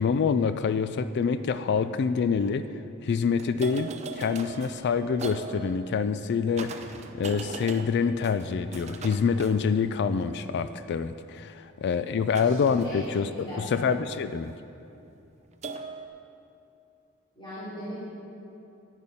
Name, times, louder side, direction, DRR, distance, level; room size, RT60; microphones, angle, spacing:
voice 1, 0.0-2.6 3.0-14.5, left 5 dB, 55° left, 12 dB, 0.3 m, -26 dB
sound 1, 1.4-1.5 2.2-2.5 3.4-10.3 12.3-14.3 15.6-16.1, right 4 dB, 30° right, 0.5 m, -41 dB
voice 2, 13.3-13.8 17.3-18.0, equal, 25° left, -12 dB, 3.1 m, -38 dB
10.5 x 9.0 x 5.5 m, 2.7 s
head